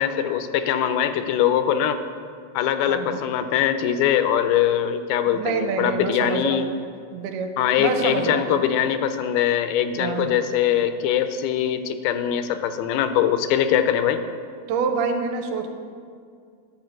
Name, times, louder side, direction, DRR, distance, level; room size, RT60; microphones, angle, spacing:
voice 1, 0.0-2.0 2.5-6.7 7.6-14.2, left 9 dB, 85° left, 10 dB, 2.5 m, -22 dB
voice 2, 2.9-3.2 5.3-6.6 7.1-7.5 7.8-8.6 10.0-10.4 14.7-15.7, right 5 dB, 90° right, 5 dB, 2.8 m, -27 dB
11.0 x 5.0 x 7.5 m, 2.2 s
omnidirectional pair, 4.4 m